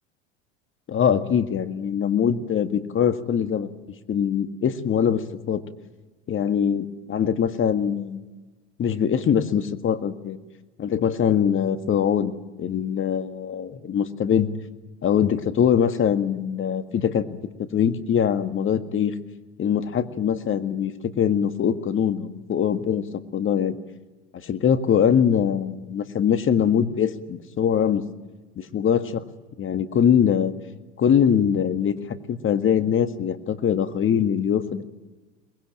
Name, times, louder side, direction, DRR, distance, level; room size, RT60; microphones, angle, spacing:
voice 1, 0.9-3.7 4.1-5.6 6.3-8.2 8.8-10.4 10.8-12.3 12.6-14.5 15.0-17.4 17.7-19.1 19.6-23.0 23.3-23.8 24.3-28.0 28.6-29.2 29.6-30.5 31.0-34.8, left 8 dB, 35° left, 11 dB, 1.9 m, -22 dB
23.5 x 20.5 x 9.0 m, 1.2 s
hypercardioid pair, 80°, 34 cm